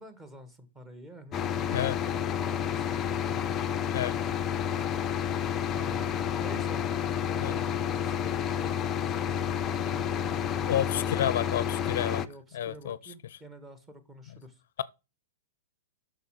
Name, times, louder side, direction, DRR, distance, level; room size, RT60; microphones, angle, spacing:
voice 1, 0.0-3.4 5.7-6.1 6.4-10.7 11.0-11.4 12.3-14.6, right 1 dB, 15° right, 1.5 m, -49 dB
sound 1, 1.3-12.3, left 9 dB, 20° left, 0.6 m, -30 dB
voice 2, 10.7-12.2 12.5-13.0 14.8-14.9, left 11 dB, 70° left, 0.5 m, -30 dB
6.8 x 6.5 x 6.4 m
hypercardioid pair, 140°, 0 cm